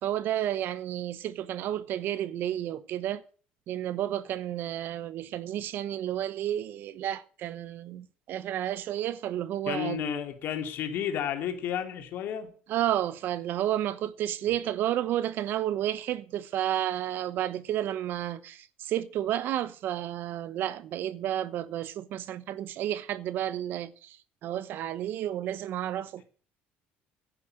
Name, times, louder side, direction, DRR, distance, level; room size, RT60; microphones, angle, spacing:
voice 1, 0.0-3.2 3.7-10.0 12.7-24.2 24.4-26.3, right 12 dB, 60° right, 0.9 m, -31 dB
voice 2, 9.7-12.5, left 9 dB, 60° left, 3.0 m, -32 dB
11.0 x 10.0 x 7.9 m
cardioid pair, 120°, 4 cm